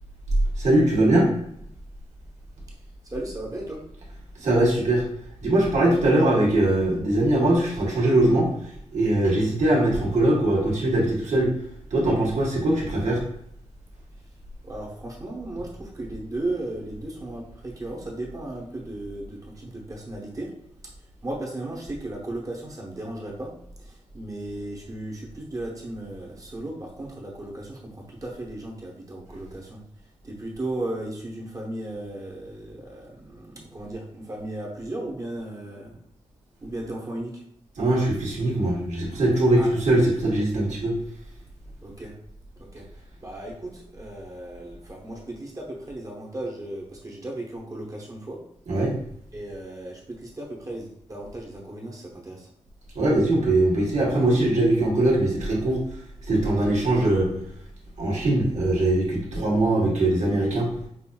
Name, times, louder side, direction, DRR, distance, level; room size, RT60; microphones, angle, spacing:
voice 1, 0.6-1.3 4.3-5.0 5.4-11.5 11.9-13.2 37.8-40.9 48.7-49.0 52.9-55.8 56.2-57.3 58.0-60.7, right 1 dB, 80° right, -3 dB, 1.3 m, -21 dB
voice 2, 3.0-3.8 4.4-4.5 14.6-20.5 20.8-23.5 23.8-29.8 30.2-36.0 36.6-37.4 39.6-39.7 41.8-42.2 42.5-48.4 49.3-52.5, right 1 dB, 30° right, -2 dB, 0.8 m, -35 dB
5.6 x 2.5 x 2.2 m, 0.71 s
wide cardioid pair, 150°, 12 cm